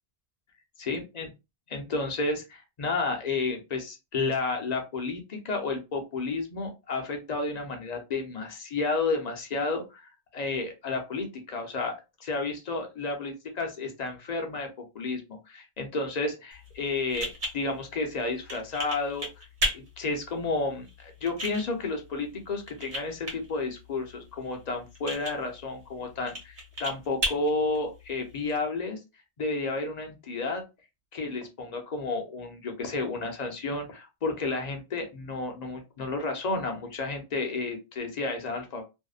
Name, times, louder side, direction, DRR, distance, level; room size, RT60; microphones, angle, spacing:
voice 1, 0.8-1.3 1.7-14.7 14.9-19.5 19.7-29.0 29.4-30.6 31.1-38.8, left 3 dB, 45° left, 3 dB, 0.6 m, -31 dB
sound 1, 16.5-28.5, equal, 60° right, 1.2 m, -37 dB
2.7 x 2.0 x 2.4 m, 0.26 s
omnidirectional pair, 1.2 m